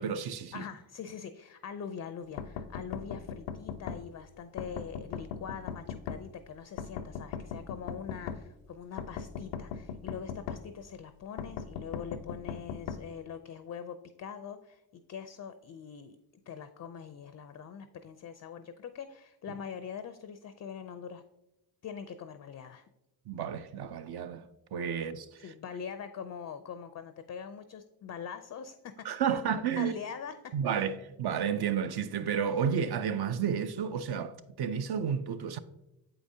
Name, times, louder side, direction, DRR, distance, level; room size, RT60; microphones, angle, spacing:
voice 1, 0.0-0.6 23.3-24.5 24.7-25.4 29.0-29.9 30.5-35.6, right 7 dB, 50° right, 0.6 m, -31 dB
voice 2, 0.5-16.2 16.5-21.2 21.8-22.9 25.4-30.9, left 7 dB, 35° left, 0.4 m, -43 dB
sound 1, 2.4-4.0 4.6-6.2 6.8-8.4 9.0-10.6 11.4-13.0, left 7 dB, 85° left, 0.6 m, -38 dB
7.6 x 4.9 x 2.7 m
supercardioid pair, 60°, 49 cm